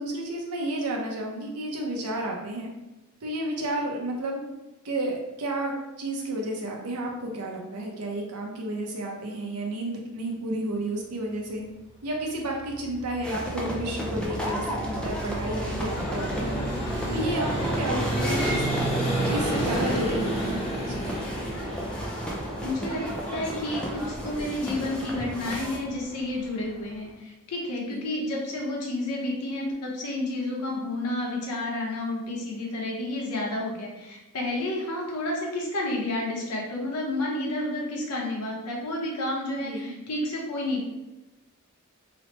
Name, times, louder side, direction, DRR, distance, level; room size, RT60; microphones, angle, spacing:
voice 1, 0.0-2.7 3.2-4.4 4.8-11.7 12.0-16.6 17.1-18.6 19.3-21.1 27.9-28.0 39.6-39.9, right 1 dB, 80° right, 0 dB, 0.6 m, -31 dB
Vehicle, 12.4-27.0, right 1 dB, 25° left, 0.7 m, -31 dB
sound 1, 13.2-25.8, equal, 5° left, 0.3 m, -34 dB
voice 2, 22.6-23.0 23.3-40.8, left 1 dB, 85° left, -2 dB, 0.7 m, -30 dB
3.0 x 2.0 x 2.9 m, 1.0 s
head